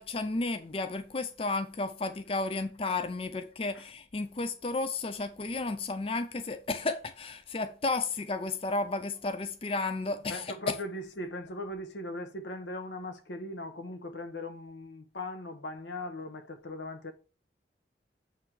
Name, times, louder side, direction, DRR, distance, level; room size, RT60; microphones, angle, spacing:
voice 1, 0.0-10.8, left 3 dB, 30° left, 0.5 m, -33 dB
voice 2, 10.3-17.1, left 1 dB, 80° left, 1.1 m, -39 dB
8.0 x 3.4 x 6.0 m
head